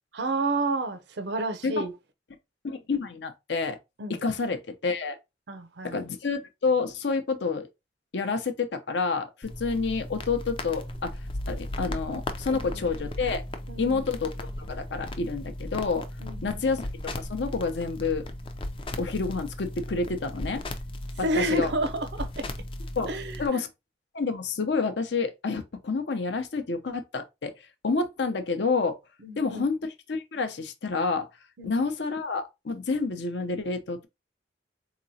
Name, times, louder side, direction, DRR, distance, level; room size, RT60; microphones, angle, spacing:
voice 1, 0.1-1.9 4.0-4.1 5.5-6.0 12.5-12.6 13.7-14.0 16.2-16.6 21.2-22.5 23.1-23.4 29.2-29.7 31.6-31.7, right 2 dB, 65° right, 0.6 m, -30 dB
voice 2, 2.6-3.8 4.1-5.2 5.8-7.7 8.1-11.1 11.5-13.4 13.8-16.0 16.4-16.9 17.3-18.2 19.0-20.6 21.2-21.7 23.0-23.1 23.4-23.7 24.1-27.5 27.8-28.9 29.4-29.8 30.1-31.3 31.6-34.1, left 4 dB, 70° left, 0.6 m, -28 dB
sound 1, 9.4-23.5, left 1 dB, 30° left, 0.4 m, -36 dB
3.8 x 2.9 x 2.7 m
head